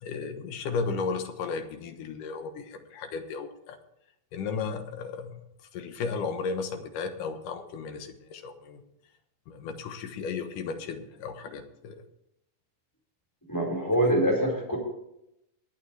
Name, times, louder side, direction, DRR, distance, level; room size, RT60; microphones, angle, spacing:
voice 1, 0.0-3.8 4.3-5.4 5.7-8.8 9.5-12.0, left 5 dB, 75° left, 6 dB, 2.8 m, -34 dB
voice 2, 13.5-14.8, right 1 dB, 5° left, -1 dB, 4.5 m, -24 dB
22.0 x 8.8 x 3.4 m, 0.81 s
omnidirectional pair, 3.8 m